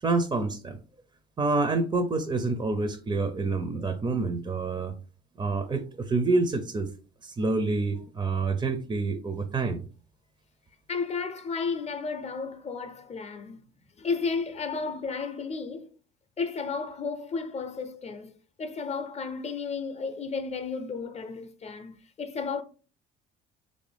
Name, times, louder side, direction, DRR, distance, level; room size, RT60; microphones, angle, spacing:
voice 1, 0.0-0.8 1.4-4.9 5.4-6.9 7.2-9.8, right 3 dB, 20° right, 0.5 m, -27 dB
voice 2, 10.9-13.7 14.0-15.9 16.4-18.3 18.6-22.6, left 5 dB, 30° left, 0.6 m, -33 dB
3.3 x 2.6 x 3.3 m
supercardioid pair, 80°, 21 cm